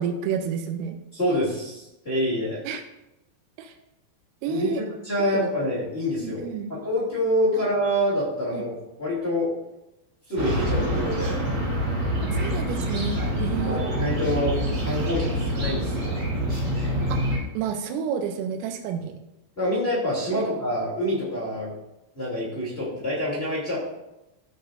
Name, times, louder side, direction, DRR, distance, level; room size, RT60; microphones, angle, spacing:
voice 1, 0.0-1.0 2.6-2.8 3.6-3.7 4.4-4.8 5.3-5.5 6.2-6.7 7.5-7.6 8.5-8.7 12.3-13.8 17.1-19.2 20.3-20.4, right 7 dB, 90° right, 6 dB, 3.4 m, -30 dB
voice 2, 1.1-2.6 4.5-8.7 9.0-9.5 10.3-11.4 13.1-14.5 14.8-16.2 19.5-21.7 22.1-23.8, left 1 dB, 20° left, -8 dB, 1.7 m, -27 dB
sound 1, 10.4-17.4, equal, 30° right, 3.7 m, -26 dB
15.5 x 6.7 x 2.6 m, 0.93 s
omnidirectional pair, 5.9 m